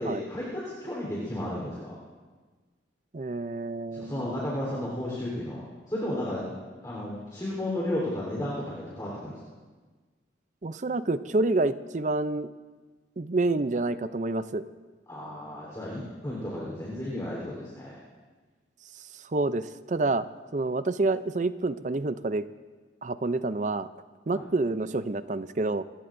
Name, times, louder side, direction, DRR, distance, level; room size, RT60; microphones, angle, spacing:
voice 1, 0.0-1.9 3.9-6.4 6.8-9.4 15.1-18.0 24.3-24.4, left 1 dB, 20° left, -5 dB, 3.7 m, -33 dB
voice 2, 3.1-4.3 10.6-12.5 13.2-14.6 19.3-20.2 20.5-22.4 23.0-23.9 24.3-25.8, right 2 dB, 40° right, 13 dB, 0.5 m, -28 dB
29.5 x 16.5 x 2.6 m, 1.4 s
head